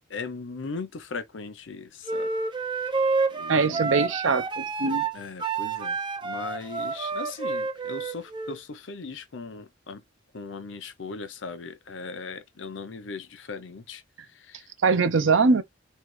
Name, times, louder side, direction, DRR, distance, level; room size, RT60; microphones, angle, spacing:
voice 1, 0.1-2.3 2.8-2.9 3.3-3.9 5.1-10.0 10.3-14.0 14.3-14.7 15.2-15.4, left 4 dB, 70° left, 0.6 m, -38 dB
sound 1, 2.1-8.6, right 4 dB, 25° right, 0.6 m, -29 dB
voice 2, 3.5-5.1 14.8-15.6, right 4 dB, 75° right, 0.6 m, -22 dB
3.3 x 2.3 x 3.1 m
head